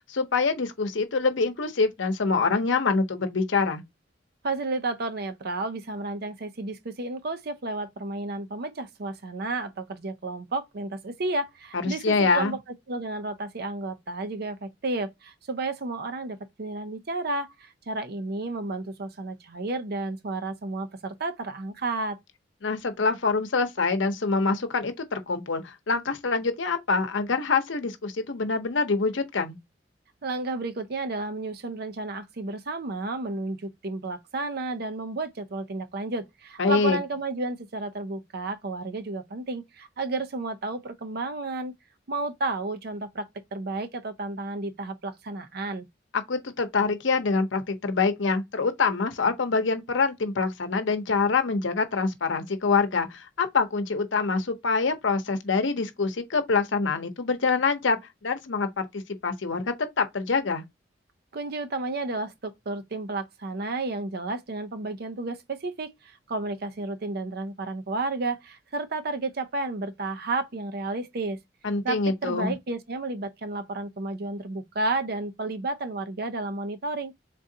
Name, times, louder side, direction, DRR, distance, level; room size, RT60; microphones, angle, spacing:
voice 1, 0.0-3.8 11.7-12.5 22.6-29.6 36.6-37.0 46.1-59.6 60.0-60.6 71.6-72.5, left 4 dB, 85° left, 0.8 m, -25 dB
voice 2, 4.4-12.6 12.9-22.2 30.2-41.7 42.1-45.9 61.3-71.4 71.8-77.1, right 2 dB, 55° right, 0.6 m, -32 dB
3.8 x 3.7 x 2.7 m
head